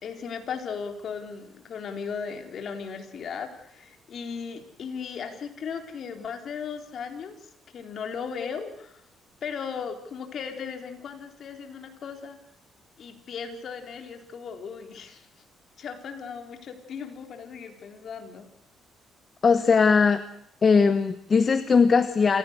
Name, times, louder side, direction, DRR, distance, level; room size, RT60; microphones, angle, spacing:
voice 1, 0.0-9.0 9.4-12.4 13.0-15.3 15.8-18.5, left 6 dB, 55° left, 5 dB, 3.9 m, -37 dB
voice 2, 19.4-20.2 20.6-22.4, left 5 dB, 35° left, 11 dB, 1.1 m, -19 dB
28.0 x 16.0 x 8.2 m, 0.73 s
cardioid pair, 110°, 0 cm